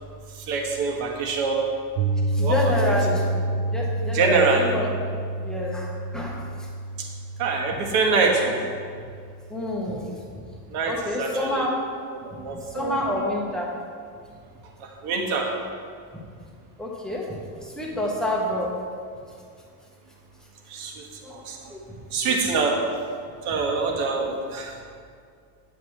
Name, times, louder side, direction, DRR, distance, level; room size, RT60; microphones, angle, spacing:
voice 1, 0.3-1.7 2.4-2.9 4.1-4.7 7.0-7.1 7.4-8.6 10.7-11.7 12.1-13.3 14.8-15.5 20.7-21.7 22.1-22.8 23.4-24.7, right 4 dB, 55° right, 1 dB, 1.4 m, -25 dB
Piano, 2.0-10.1, right 1 dB, 90° right, 0.9 m, -29 dB
voice 2, 2.3-3.2 3.7-4.9 5.4-6.4 9.5-10.1 10.9-11.7 12.5-13.7 16.8-17.2 17.6-18.7 21.2-21.4 21.7-21.8 22.2-22.4, left 1 dB, ahead, -4 dB, 1.0 m, -28 dB
9.1 x 8.3 x 3.2 m, 2.2 s
cardioid pair, 165°, 44 cm